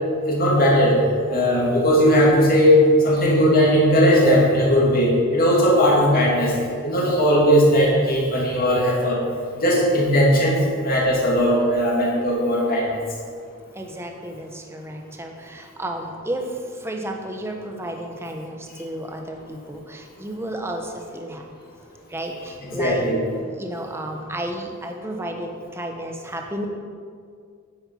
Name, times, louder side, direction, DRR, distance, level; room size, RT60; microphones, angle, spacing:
voice 1, 0.3-1.0 1.3-6.5 6.8-9.2 9.5-13.0 22.7-23.2, equal, 45° left, -4 dB, 2.7 m, -18 dB
voice 2, 13.7-21.5 22.1-23.1 23.6-26.7, right 1 dB, 10° right, 3 dB, 0.9 m, -32 dB
10.0 x 7.9 x 5.4 m, 2.2 s
head